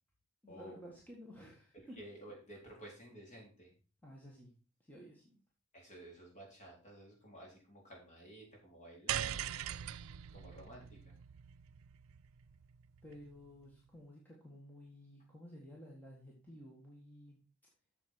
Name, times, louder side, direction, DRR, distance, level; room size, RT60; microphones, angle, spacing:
voice 1, 0.4-2.0 4.0-4.5 4.9-5.4 13.0-17.4, equal, 10° left, -3 dB, 1.8 m, -53 dB
voice 2, 1.7-3.7 5.7-9.5 10.3-11.2, right 1 dB, 35° left, -1 dB, 3.8 m, -53 dB
sound 1, 9.1-13.5, right 10 dB, 80° right, 0.4 m, -42 dB
8.6 x 7.0 x 4.4 m, 0.35 s
head